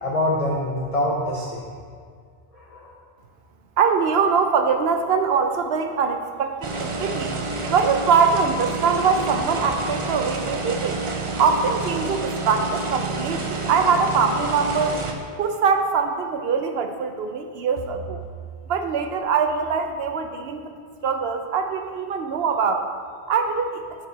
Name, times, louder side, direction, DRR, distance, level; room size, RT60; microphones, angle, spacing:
voice 1, 0.0-1.6 2.5-2.9, left 1 dB, 35° left, -5 dB, 0.9 m, -25 dB
voice 2, 3.8-7.4 7.7-11.0 11.4-15.0 15.4-18.2 18.7-20.7 21.0-22.9 23.3-23.8, right 5 dB, 70° right, 7 dB, 0.8 m, -22 dB
sound 1, 6.6-15.1, right 2 dB, 35° right, 0.5 m, -28 dB
9.8 x 4.6 x 3.9 m, 2.1 s
omnidirectional pair, 1.1 m